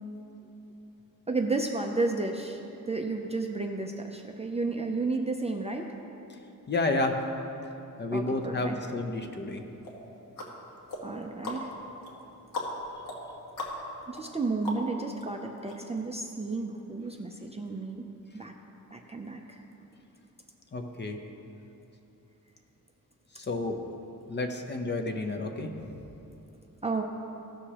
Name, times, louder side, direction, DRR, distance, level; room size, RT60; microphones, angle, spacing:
voice 1, 1.3-5.9 8.1-8.8 11.0-11.7 14.1-18.1 18.3-18.5 18.9-19.6 26.8-27.0, right 3 dB, 20° right, 2 dB, 0.4 m, -32 dB
voice 2, 6.7-7.2 8.0-9.6 20.7-21.2 23.3-23.8 24.3-26.0, left 2 dB, 35° left, 4 dB, 0.6 m, -31 dB
sound 1, 9.8-15.2 15.7-15.8, left 1 dB, 80° left, 1.5 m, -39 dB
15.5 x 6.4 x 2.9 m, 2.9 s
wide cardioid pair, 180°, 33 cm